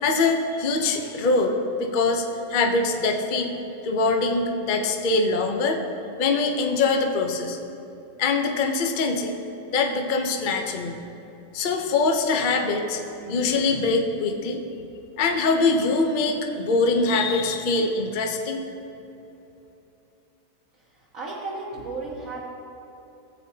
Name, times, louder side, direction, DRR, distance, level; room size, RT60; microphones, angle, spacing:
voice 1, 0.0-2.2 2.5-3.5 3.8-5.8 6.2-7.6 8.2-9.3 9.7-11.0 11.5-13.0 13.3-14.6 15.2-18.6, left 3 dB, 55° left, 3 dB, 0.5 m, -23 dB
voice 2, 20.8-22.4, right 3 dB, 50° right, -7 dB, 1.5 m, -34 dB
15.5 x 8.2 x 2.8 m, 2.9 s
omnidirectional pair, 1.9 m